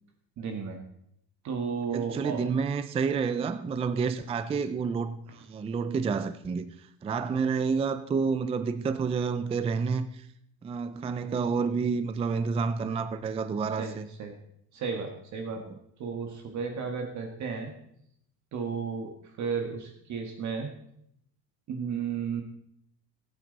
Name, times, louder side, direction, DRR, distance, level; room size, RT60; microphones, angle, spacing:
voice 1, 0.4-0.8 1.4-2.4 13.8-14.4 14.7-15.6 16.0-17.7 18.5-19.1 19.4-20.7 21.7-22.4, right 6 dB, 45° right, 1.7 m, -33 dB
voice 2, 1.9-10.3 10.6-14.1, right 5 dB, 15° right, 0.4 m, -29 dB
18.5 x 8.7 x 4.0 m
cardioid pair, 145°, 38 cm